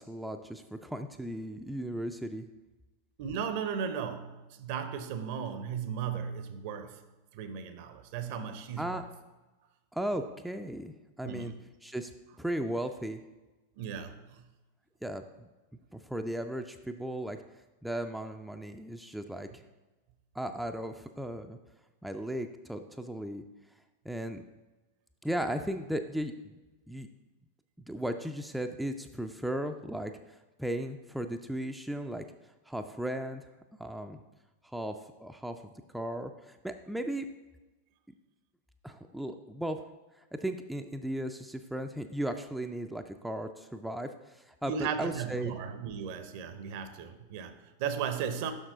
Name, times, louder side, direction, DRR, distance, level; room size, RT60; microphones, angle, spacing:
voice 1, 0.0-2.5 8.8-9.0 9.9-11.5 11.8-12.1 12.4-13.2 15.0-15.5 15.9-17.4 17.8-19.6 20.3-21.6 22.0-23.4 24.1-24.4 25.2-26.5 26.9-27.1 27.9-32.2 32.7-33.5 33.8-34.2 34.6-35.0 35.2-35.6 35.9-37.3 38.8-39.8 40.2-45.5, right 1 dB, ahead, 0.3 m, -36 dB
voice 2, 3.2-7.0 7.3-9.0 11.2-11.6 13.8-14.5 44.6-48.5, right 7 dB, 50° right, 0.6 m, -36 dB
6.5 x 5.9 x 3.8 m
figure-of-eight pair, 90°, 0 cm